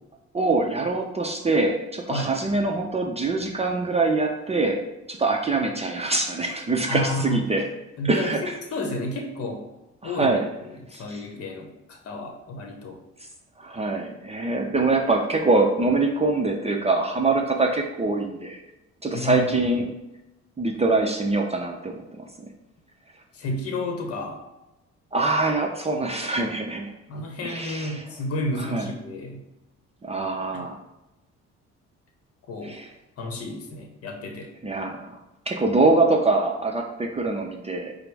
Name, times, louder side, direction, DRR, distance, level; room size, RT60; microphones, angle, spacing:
voice 1, 0.3-4.8 5.1-7.6 8.0-8.4 10.0-10.4 10.9-11.2 13.6-18.6 19.0-19.9 20.6-22.5 25.1-26.9 27.4-28.0 28.7-28.9 30.0-30.8 32.6-32.8 34.6-35.2 35.5-37.9, right 3 dB, 20° right, 1 dB, 0.5 m, -24 dB
voice 2, 6.9-7.4 8.0-9.6 10.0-13.0 19.1-19.5 23.3-24.4 27.1-29.4 30.5-30.7 32.5-32.8 33.2-34.5, left 1 dB, 50° left, 2 dB, 0.9 m, -31 dB
4.9 x 2.0 x 4.6 m, 0.96 s
cardioid pair, 90°, 30 cm